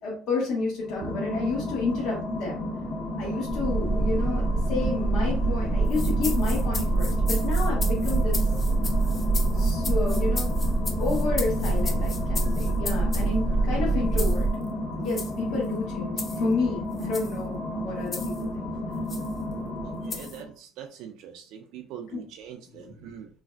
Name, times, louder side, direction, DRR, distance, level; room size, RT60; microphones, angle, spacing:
voice 1, 0.0-2.6 3.2-8.5 9.5-10.6 11.0-14.5 15.0-18.7 22.1-22.2 22.7-22.9, left 3 dB, 60° left, -4 dB, 0.9 m, -31 dB
sound 1, 0.8-20.5, left 1 dB, 85° left, 0.9 m, -33 dB
Boat Water vehicle, 3.5-14.5, right 2 dB, 5° left, 0.7 m, -25 dB
sound 2, 5.9-13.3 14.2-14.4 15.1-15.3 16.2-16.4 17.0-17.4 18.1-18.4 19.1-19.3 20.1-20.4, left 4 dB, 30° left, 0.4 m, -36 dB
voice 2, 19.8-23.3, right 8 dB, 65° right, 4 dB, 0.3 m, -42 dB
3.1 x 2.5 x 2.3 m, 0.43 s
cardioid pair, 155°, 0 cm